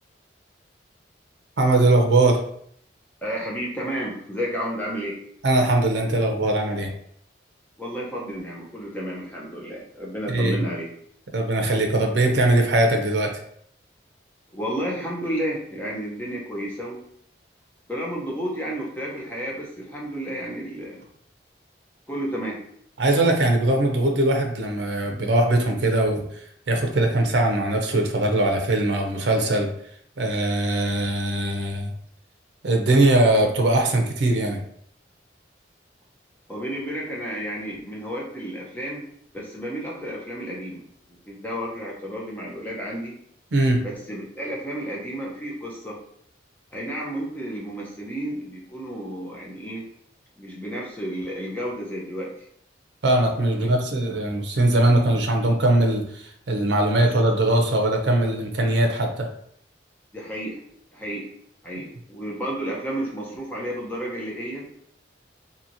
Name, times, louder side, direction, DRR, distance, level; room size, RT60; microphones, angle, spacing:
voice 1, 1.6-2.4 5.4-6.9 10.3-10.6 11.3-13.3 23.0-29.7 30.2-31.9 32.6-34.6 43.5-43.8 53.0-59.3, right 2 dB, 75° right, 3 dB, 0.5 m, -21 dB
voice 2, 3.2-5.2 7.8-10.9 14.5-17.0 17.9-21.0 22.1-22.6 36.5-39.0 39.3-40.8 41.1-43.1 43.8-46.0 46.7-49.8 50.4-52.3 53.6-53.7 57.0-57.1 60.1-60.6 60.9-61.3 61.6-64.7, equal, 10° left, -4 dB, 0.7 m, -31 dB
2.8 x 2.7 x 2.6 m, 0.66 s
head